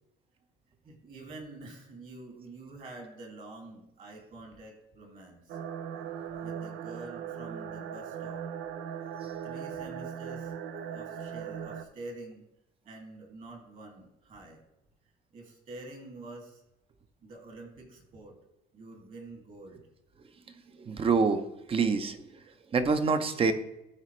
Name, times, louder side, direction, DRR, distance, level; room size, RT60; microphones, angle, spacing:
voice 1, 0.8-5.6 6.4-8.4 9.4-10.5 10.9-12.4 12.8-14.6 15.3-16.6 17.2-18.3 18.7-19.8, right 2 dB, 50° right, 2 dB, 2.3 m, -47 dB
sound 1, 5.5-11.8, right 8 dB, 85° right, 0.6 m, -39 dB
voice 2, 20.8-22.2 22.7-23.5, right 4 dB, 35° right, 10 dB, 0.7 m, -26 dB
12.5 x 4.2 x 3.2 m, 0.88 s
cardioid pair, 110°, 17 cm